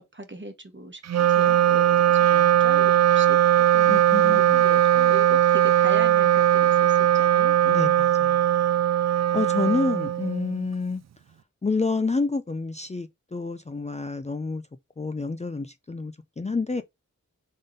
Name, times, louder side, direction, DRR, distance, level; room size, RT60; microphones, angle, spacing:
voice 1, 0.0-7.6, right 2 dB, 35° right, 1.4 m, -39 dB
Wind instrument woodwind instrument, 1.0-10.6, right 11 dB, 55° right, 0.4 m, -19 dB
voice 2, 3.9-4.6 7.6-8.6 9.3-11.0 11.6-14.6 15.0-16.8, left 3 dB, 20° left, 0.5 m, -28 dB
3.8 x 3.7 x 3.8 m
cardioid pair, 45°, 31 cm